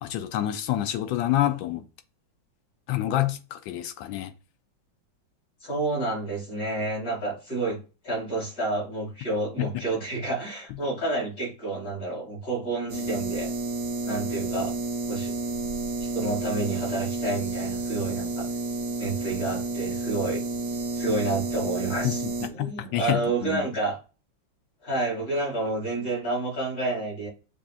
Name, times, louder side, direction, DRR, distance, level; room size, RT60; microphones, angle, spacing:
voice 1, 0.0-1.8 2.9-4.3 9.6-9.7 22.0-23.7, left 13 dB, 85° left, 1.3 m, -28 dB
voice 2, 5.6-13.5 14.0-14.7 15.1-15.3 16.0-18.5 19.0-20.4 20.9-24.0 24.8-27.3, right 2 dB, 50° left, 2.9 m, -29 dB
sound 1, 12.9-22.5, right 2 dB, 65° right, 0.9 m, -30 dB
7.1 x 2.7 x 2.4 m
omnidirectional pair, 2.0 m